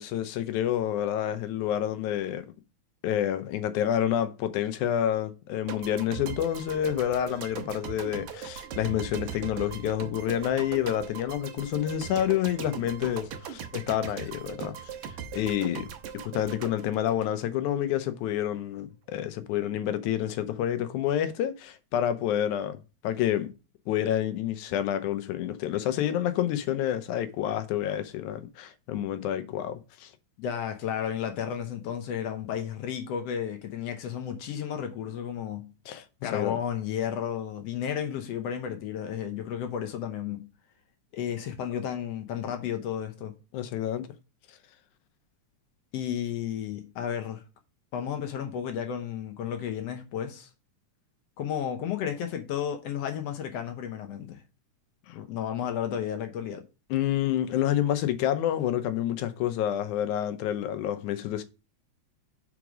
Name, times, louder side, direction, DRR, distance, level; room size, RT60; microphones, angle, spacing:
voice 1, 0.0-2.5 3.0-14.9 15.3-15.9 16.1-22.8 23.0-23.5 23.9-30.1 35.9-36.6 43.5-44.1 56.9-61.4, left 11 dB, 85° left, 2.1 m, -28 dB
sound 1, 5.7-17.9, right 8 dB, 70° right, 1.5 m, -40 dB
voice 2, 30.4-35.7 36.2-40.5 41.1-43.3 45.9-47.4 47.9-50.5 51.4-54.4 55.1-56.6, left 9 dB, 70° left, 1.7 m, -33 dB
5.0 x 4.8 x 6.0 m
omnidirectional pair, 3.4 m